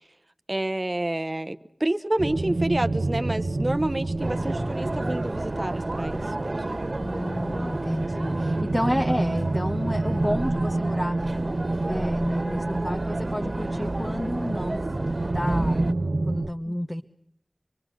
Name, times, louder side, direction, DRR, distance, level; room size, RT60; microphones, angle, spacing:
voice 1, 0.5-6.8 16.7-16.8, right 1 dB, 30° right, 9 dB, 0.9 m, -29 dB
sound 1, 2.2-16.5, right 2 dB, 90° right, 1.0 m, -28 dB
sound 2, 4.2-15.9, right 1 dB, 50° right, 1.8 m, -33 dB
voice 2, 7.0-11.2 11.8-14.8 15.3-17.0, equal, 15° left, 6 dB, 1.0 m, -31 dB
26.0 x 23.0 x 6.2 m, 0.76 s
wide cardioid pair, 50°, 0 cm